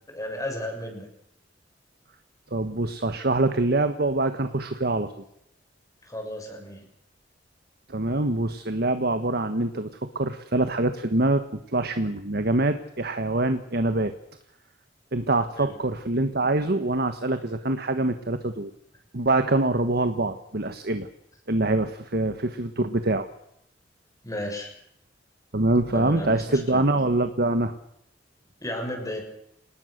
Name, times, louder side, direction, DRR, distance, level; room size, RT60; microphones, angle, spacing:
voice 1, 0.1-1.1 6.0-6.9 15.5-15.8 24.2-24.7 25.9-26.8 28.6-29.2, left 1 dB, 20° left, 3 dB, 6.8 m, -34 dB
voice 2, 2.5-5.1 7.9-9.9 10.1-14.1 15.1-18.7 19.1-21.1 21.5-23.3 25.5-27.7, right 2 dB, 60° right, 9 dB, 1.4 m, -24 dB
28.0 x 19.0 x 6.7 m, 0.75 s
head